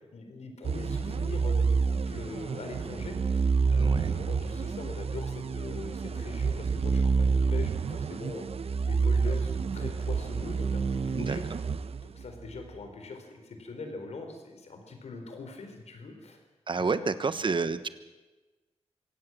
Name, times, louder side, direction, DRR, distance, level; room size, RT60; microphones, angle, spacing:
voice 1, 0.1-3.4 3.7-8.5 8.8-11.4 12.0-16.4 16.8-17.4, left 3 dB, 90° left, 5 dB, 4.1 m, -42 dB
sound 1, 0.6-12.5, right 5 dB, 65° right, 0.9 m, -28 dB
voice 2, 3.8-4.1 11.2-11.6 16.7-17.9, right 4 dB, 50° right, 12 dB, 1.2 m, -30 dB
25.0 x 17.0 x 7.8 m, 1.2 s
wide cardioid pair, 85°, 11 cm